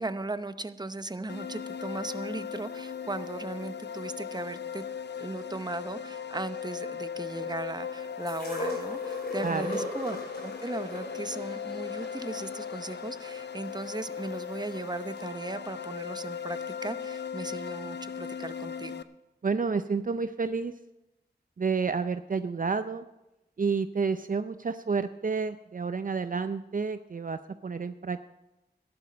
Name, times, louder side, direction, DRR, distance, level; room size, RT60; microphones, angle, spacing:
voice 1, 0.0-4.8 5.2-19.0, right 2 dB, 25° right, 12 dB, 0.8 m, -37 dB
sound 1, 1.3-19.0, left 7 dB, 85° left, 0.5 m, -38 dB
sound 2, 8.3-14.3 15.2-15.3, left 1 dB, 65° left, 3.9 m, -38 dB
voice 2, 9.4-9.8 19.4-20.7 21.6-23.0 23.6-28.3, right 5 dB, 50° right, 11 dB, 0.5 m, -30 dB
13.5 x 11.5 x 5.2 m, 0.95 s
cardioid pair, 45°, 17 cm